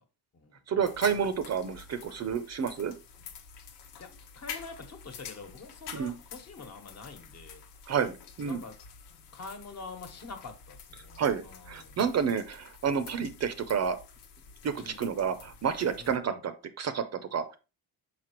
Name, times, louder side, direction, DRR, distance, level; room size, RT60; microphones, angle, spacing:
voice 1, 0.7-2.9 5.9-6.1 7.9-8.6 11.2-14.0 14.6-16.5 16.8-17.4, right 7 dB, 40° right, 0.6 m, -30 dB
sound 1, 0.8-16.2, left 6 dB, 90° left, 1.2 m, -48 dB
voice 2, 4.0-7.6 8.5-8.8 9.3-11.9 14.8-15.1 16.0-16.4, left 4 dB, 40° left, 1.3 m, -46 dB
5.9 x 5.5 x 3.0 m
cardioid pair, 145°, 41 cm